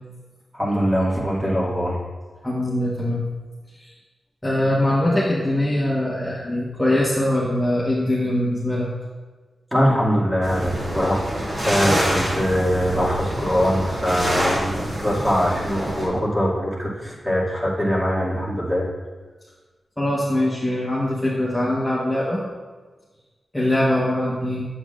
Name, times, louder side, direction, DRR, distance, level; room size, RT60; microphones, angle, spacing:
voice 1, 0.5-2.0 9.7-11.2 11.5-18.9, equal, 10° right, -6 dB, 2.3 m, -22 dB
voice 2, 2.4-3.3 3.8-3.9 4.4-8.9 20.0-22.4 23.5-24.6, left 1 dB, 10° left, -6 dB, 1.3 m, -22 dB
sound 1, 10.4-16.1, equal, 45° right, 2.3 m, -26 dB
7.9 x 7.8 x 2.5 m, 1.3 s
cardioid pair, 75°, 0 cm